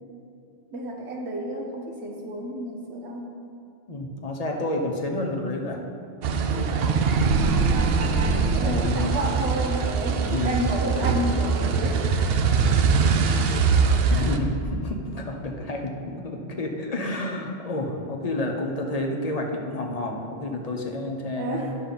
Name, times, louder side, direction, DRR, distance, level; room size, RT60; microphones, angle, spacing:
voice 1, 0.7-3.2 8.3-12.0 21.3-21.8, right 1 dB, 85° right, -1 dB, 1.5 m, -31 dB
voice 2, 3.9-5.8 6.6-7.0 8.3-9.2 10.3-10.7 14.1-21.7, left 2 dB, 40° left, 1 dB, 0.9 m, -30 dB
sound 1, 6.2-14.4, right 5 dB, 70° right, 0.8 m, -22 dB
10.0 x 6.8 x 4.1 m, 2.5 s
omnidirectional pair, 1.1 m